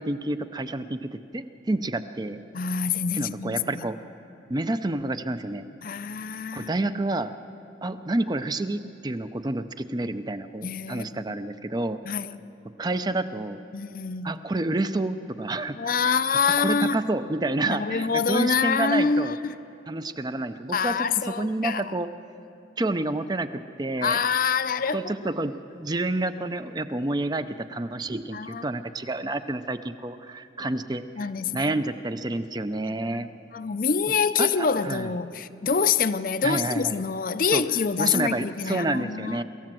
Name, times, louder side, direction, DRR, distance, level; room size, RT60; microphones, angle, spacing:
voice 1, 0.0-2.4 3.1-4.0 4.5-5.7 6.5-7.3 7.8-12.0 12.8-13.6 14.2-16.2 16.6-19.4 19.9-21.1 21.4-22.1 22.8-23.5 23.8-24.2 24.9-31.0 31.5-33.3 34.4-35.1 36.4-37.0 37.5-37.6 38.0-39.4, right 2 dB, 25° right, 0.6 m, -29 dB
voice 2, 2.5-3.8 5.8-6.7 10.6-11.2 12.0-12.4 13.7-14.3 15.8-17.0 17.6-19.5 20.7-21.8 24.0-25.1 28.3-28.6 30.6-30.7 31.2-31.8 32.9-33.3 33.5-39.4, left 5 dB, 50° left, 0.6 m, -26 dB
25.0 x 14.5 x 7.6 m
head